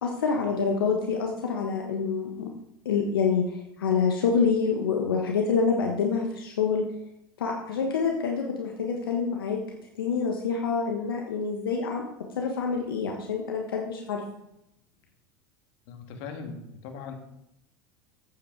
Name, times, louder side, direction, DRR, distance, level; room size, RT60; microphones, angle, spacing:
voice 1, 0.0-2.5 2.8-6.9 7.4-9.6 10.0-12.0 12.4-14.2, left 5 dB, 85° left, 1 dB, 1.3 m, -27 dB
voice 2, 15.9-17.1, left 5 dB, 65° left, 5 dB, 1.9 m, -39 dB
8.8 x 8.5 x 4.7 m, 0.81 s
hypercardioid pair, 85°, 12 cm